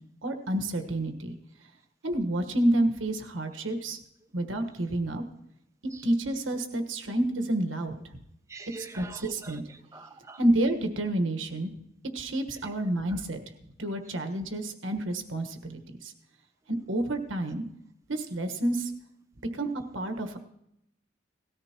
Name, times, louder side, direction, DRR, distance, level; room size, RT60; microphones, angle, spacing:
voice 1, 0.2-1.4 2.0-4.0 4.3-5.2 6.0-8.2 8.9-9.6 10.4-11.7 12.1-13.4 13.8-16.1 16.7-17.6 18.1-18.9 19.5-19.7 19.9-20.4, right 1 dB, 90° right, 6 dB, 1.4 m, -29 dB
voice 2, 8.5-10.4 12.5-12.9, right 3 dB, 15° right, 7 dB, 0.5 m, -46 dB
18.0 x 13.5 x 3.0 m, 0.79 s
head